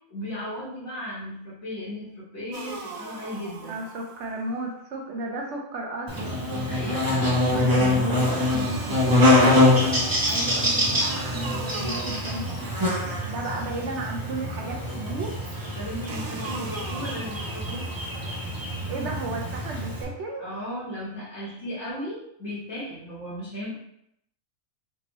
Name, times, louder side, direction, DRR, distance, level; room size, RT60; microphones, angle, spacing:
voice 1, 0.1-3.8 6.4-9.3 15.7-17.9 20.4-23.7, left 1 dB, 55° left, -8 dB, 1.3 m, -36 dB
sound 1, 2.5-4.5 8.2-13.5 16.1-18.5, right 4 dB, 90° right, 1.1 m, -40 dB
voice 2, 3.7-6.5 10.2-15.4 18.9-20.5, right 2 dB, 65° right, 0 dB, 0.8 m, -34 dB
Buzz, 6.1-20.0, left 1 dB, 30° right, 0.4 m, -24 dB
3.5 x 2.8 x 3.0 m, 0.75 s
omnidirectional pair, 1.5 m